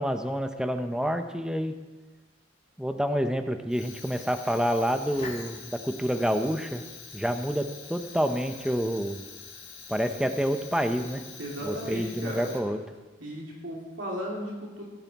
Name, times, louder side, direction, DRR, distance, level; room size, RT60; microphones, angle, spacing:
voice 1, 0.0-1.7 2.8-6.8 7.1-9.2 9.9-11.2 11.6-12.8, equal, 5° right, 7 dB, 0.6 m, -28 dB
Fire, 3.7-13.0, left 5 dB, 35° left, 2.1 m, -45 dB
voice 2, 11.4-12.6 13.2-14.8, equal, 75° right, -3 dB, 2.6 m, -35 dB
16.5 x 9.5 x 4.1 m, 1.2 s
head